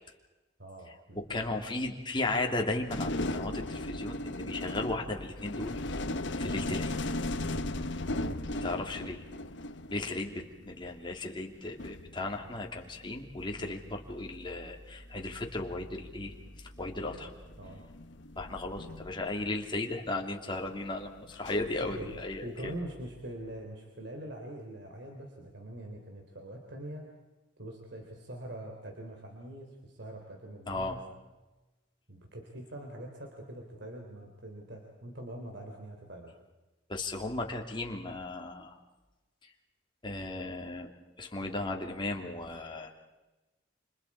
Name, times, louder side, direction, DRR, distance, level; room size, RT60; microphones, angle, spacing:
voice 1, 0.6-1.7 7.4-7.7 8.1-8.4 13.6-13.8 17.0-17.3 17.6-17.8 21.8-22.1 22.4-27.0 27.6-31.1 32.1-36.3 41.4-41.7, right 1 dB, 65° right, 2 dB, 3.7 m, -44 dB
voice 2, 1.1-5.8 6.4-7.0 8.6-9.2 9.9-16.3 16.8-17.3 18.4-22.7 30.7-30.9 36.9-38.8 40.0-40.9 41.2-42.9, left 2 dB, 25° left, 1 dB, 2.9 m, -35 dB
sound 1, 2.9-10.3 11.5-11.6 11.8-13.1 14.2-14.5 15.6-15.7 16.3-16.6 17.4-19.8 21.3-22.5, left 1 dB, 65° left, 1.1 m, -37 dB
29.5 x 27.0 x 4.9 m, 1.1 s
head